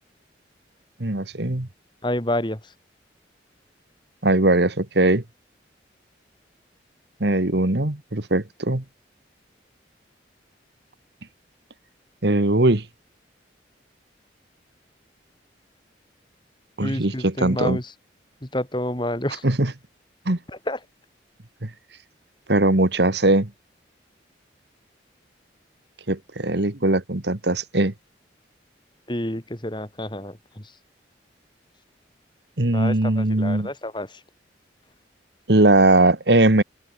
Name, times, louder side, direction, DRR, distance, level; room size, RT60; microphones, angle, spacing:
voice 1, 1.0-1.7 4.2-5.2 7.2-8.8 12.2-12.8 16.8-17.8 19.4-19.7 20.3-20.4 21.6-21.7 22.5-23.5 26.1-27.9 32.6-33.7 35.5-36.6, right 2 dB, 65° right, 1.7 m, -20 dB
voice 2, 2.0-2.7 16.8-17.9 18.4-19.4 20.5-20.8 29.1-30.7 32.7-34.2, left 1 dB, 25° left, 2.8 m, -29 dB
open air
head